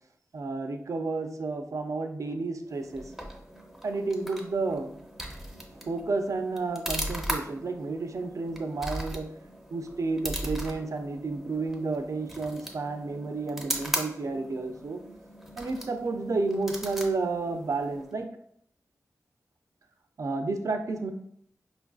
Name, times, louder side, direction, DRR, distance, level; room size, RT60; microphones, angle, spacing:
voice 1, 0.3-3.0 3.8-4.9 5.8-9.2 9.7-15.0 15.6-18.3 20.2-21.1, right 3 dB, 60° right, 6 dB, 0.4 m, -31 dB
sound 1, 2.7-18.2, equal, 5° right, 0.5 m, -39 dB
5.0 x 2.4 x 2.3 m, 0.68 s
wide cardioid pair, 90°, 6 cm